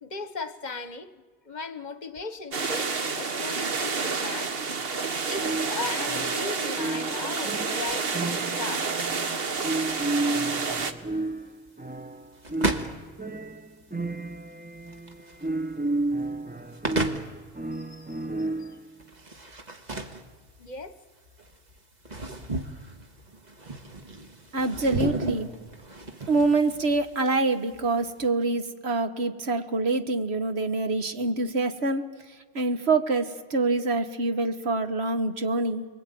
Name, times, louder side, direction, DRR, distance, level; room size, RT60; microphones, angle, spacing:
voice 1, 0.0-4.5 5.2-9.0 17.7-18.3 18.6-18.7 20.6-20.9, left 3 dB, 45° left, 1.1 m, -37 dB
sound 1, 2.5-10.9, right 4 dB, 70° right, 1.4 m, -29 dB
sound 2, 5.4-18.9, right 2 dB, 10° right, 0.6 m, -32 dB
sound 3, 9.1-28.3, right 2 dB, 45° right, 1.7 m, -36 dB
voice 2, 24.5-25.5 26.3-32.0 32.5-35.9, right 3 dB, 90° right, 1.7 m, -25 dB
29.5 x 21.5 x 9.2 m
omnidirectional pair, 1.0 m